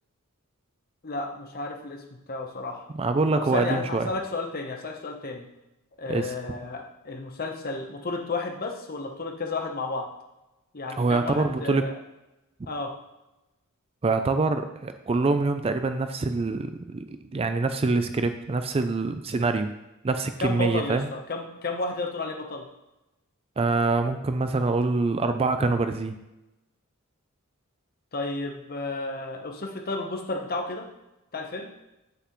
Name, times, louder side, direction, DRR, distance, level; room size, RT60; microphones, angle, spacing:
voice 1, 1.0-2.9 3.3-5.5 6.0-10.1 10.7-12.0 12.7-12.9 20.4-22.6 28.1-30.9 31.3-31.7, left 2 dB, 45° left, 3 dB, 1.0 m, -32 dB
voice 2, 2.9-4.1 6.1-6.3 11.0-11.9 14.0-17.0 17.3-19.7 20.0-21.1 23.6-26.1, right 3 dB, 25° right, 8 dB, 0.4 m, -25 dB
8.1 x 6.6 x 3.1 m, 0.96 s
head